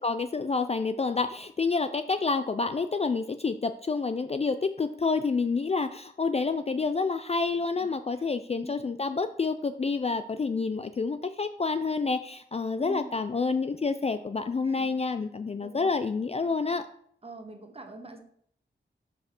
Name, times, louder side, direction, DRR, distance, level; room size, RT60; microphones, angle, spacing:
voice 1, 0.0-16.9, left 4 dB, 35° left, 10 dB, 0.4 m, -28 dB
voice 2, 8.5-8.8 12.8-13.2 14.6-14.9 15.6-15.9 17.2-18.2, right 2 dB, 30° right, 5 dB, 1.1 m, -43 dB
5.2 x 4.9 x 6.0 m, 0.64 s
wide cardioid pair, 80°, 20 cm